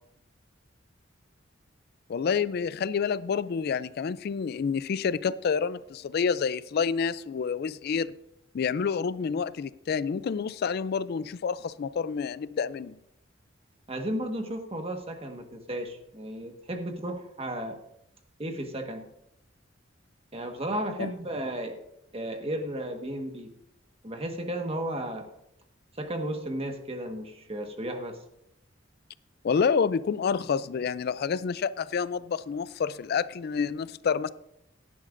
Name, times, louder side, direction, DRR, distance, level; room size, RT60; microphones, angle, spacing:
voice 1, 2.1-8.1 8.5-13.0 21.0-21.1 29.4-34.3, left 6 dB, 55° left, 16 dB, 0.3 m, -28 dB
voice 2, 13.9-17.8 18.4-19.1 20.3-21.8 22.1-23.5 24.0-25.3 26.0-28.2, right 1 dB, 30° right, 5 dB, 1.4 m, -34 dB
17.0 x 10.5 x 2.6 m, 0.80 s
head